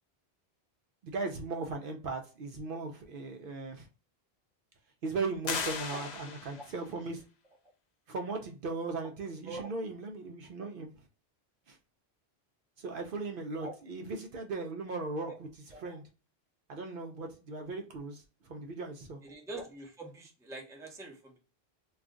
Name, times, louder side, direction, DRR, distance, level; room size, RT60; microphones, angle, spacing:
voice 1, 1.0-3.9 5.0-7.2 8.1-10.9 11.7-11.8 12.8-15.3 15.8-16.0 16.7-18.2 18.5-19.2, right 3 dB, 60° right, 0.7 m, -37 dB
sound 1, 5.4-6.8, left 6 dB, 80° left, 0.9 m, -37 dB
voice 2, 19.2-21.4, right 2 dB, 5° right, 0.6 m, -44 dB
2.4 x 2.3 x 3.6 m
omnidirectional pair, 1.1 m